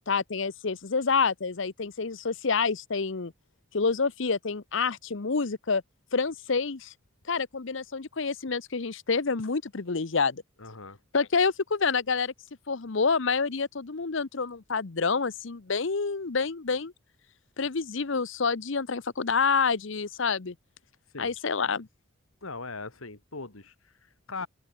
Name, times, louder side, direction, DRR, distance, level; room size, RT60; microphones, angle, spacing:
voice 1, 0.1-3.3 3.7-5.8 6.1-6.9 7.3-10.4 11.1-12.3 12.7-16.9 17.6-20.5 21.2-21.9, left 5 dB, 65° left, 0.8 m, -28 dB
voice 2, 10.6-11.0 21.1-21.3 22.4-24.5, left 3 dB, 90° left, 2.8 m, -40 dB
open air
head